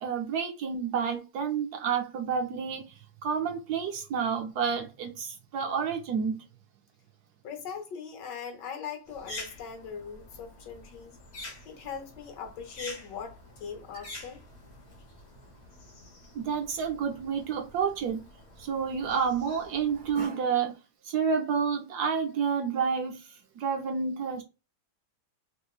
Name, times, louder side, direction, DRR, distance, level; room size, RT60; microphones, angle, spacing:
voice 1, 0.0-6.4 16.3-18.2 18.6-20.7 21.0-23.2 23.6-24.4, right 6 dB, 70° right, 1.0 m, -29 dB
voice 2, 7.4-11.2 11.6-14.4, left 6 dB, 70° left, 1.5 m, -40 dB
sound 1, 9.1-20.3, left 2 dB, 45° left, 1.1 m, -47 dB
3.5 x 3.3 x 2.3 m
omnidirectional pair, 2.0 m